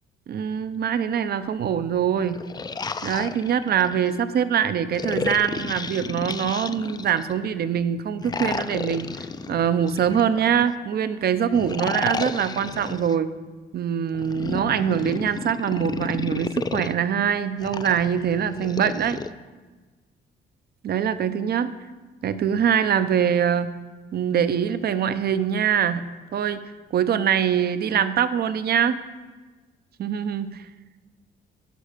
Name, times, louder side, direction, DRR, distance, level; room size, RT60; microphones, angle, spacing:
voice 1, 0.3-2.4 3.0-9.1 9.5-13.3 13.7-19.2 20.8-21.7 22.2-23.7 24.1-26.0 26.3-26.6 26.9-29.0 30.0-30.6, right 8 dB, 55° right, 13 dB, 0.6 m, -23 dB
sound 1, 2.2-4.1 4.9-7.3 8.2-10.7 11.5-13.1 14.1-16.9 17.6-19.3, left 4 dB, 20° left, 0.3 m, -32 dB
12.0 x 5.0 x 5.0 m, 1.3 s
cardioid pair, 90°, 20 cm